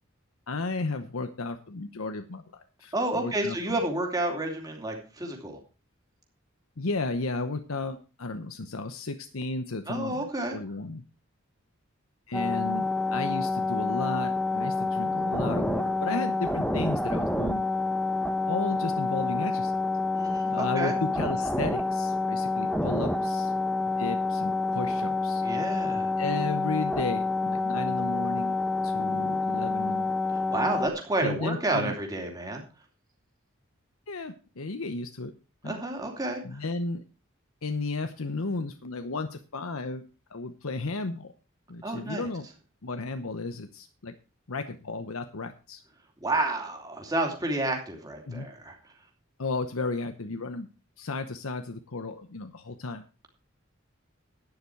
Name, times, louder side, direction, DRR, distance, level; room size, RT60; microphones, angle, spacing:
voice 1, 0.5-3.9 6.8-11.0 12.3-17.6 18.5-19.7 20.5-23.5 24.0-25.4 26.2-28.6 28.8-30.2 31.2-32.0 34.1-35.3 35.6-35.8 36.4-37.0 37.6-40.0 40.3-41.3 41.7-42.5 42.8-44.1 44.5-45.8 48.3-48.5 49.4-50.7 51.0-53.0, left 3 dB, 85° left, 8 dB, 0.9 m, -34 dB
voice 2, 2.9-5.6 9.9-10.6 20.1-20.9 25.4-26.1 30.5-32.6 35.6-36.6 41.8-42.2 46.2-48.8, right 2 dB, 20° right, 2 dB, 2.8 m, -30 dB
sound 1, 12.3-30.9, left 3 dB, 5° left, 0.8 m, -28 dB
11.5 x 9.7 x 4.5 m, 0.34 s
head